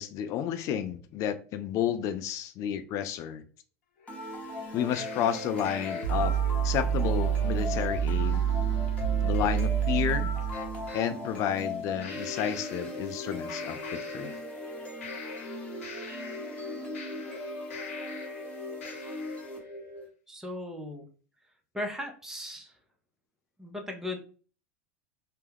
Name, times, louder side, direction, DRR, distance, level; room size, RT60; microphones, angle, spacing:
voice 1, 0.0-3.4 4.7-6.4 6.6-8.4 9.2-10.4 10.9-14.4, left 9 dB, 45° left, 9 dB, 0.4 m, -31 dB
sound 1, 3.8-9.4, left 7 dB, 75° left, 1.0 m, -55 dB
sound 2, 4.1-20.1, left 2 dB, 15° left, 1.0 m, -38 dB
sound 3, 4.9-11.0 12.0-13.2 13.5-14.7 15.0-18.4 18.8-19.4, right 8 dB, 90° left, 0.7 m, -31 dB
voice 2, 20.3-21.0 21.7-22.7 23.6-24.2, left 1 dB, 5° right, 3 dB, 0.6 m, -37 dB
2.2 x 2.1 x 3.3 m, 0.40 s
hypercardioid pair, 100°, 7 cm